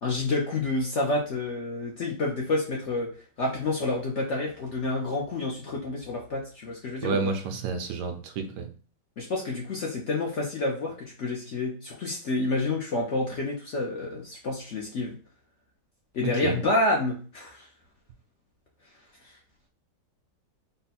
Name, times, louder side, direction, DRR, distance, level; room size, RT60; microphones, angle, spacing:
voice 1, 0.0-3.1 3.4-7.3 9.2-15.1 16.1-17.7 19.2-19.3, left 2 dB, 55° left, -2 dB, 0.8 m, -29 dB
voice 2, 7.0-8.7 16.2-16.6, right 4 dB, 75° right, 6 dB, 1.2 m, -30 dB
3.9 x 2.2 x 4.1 m, 0.40 s
omnidirectional pair, 1.9 m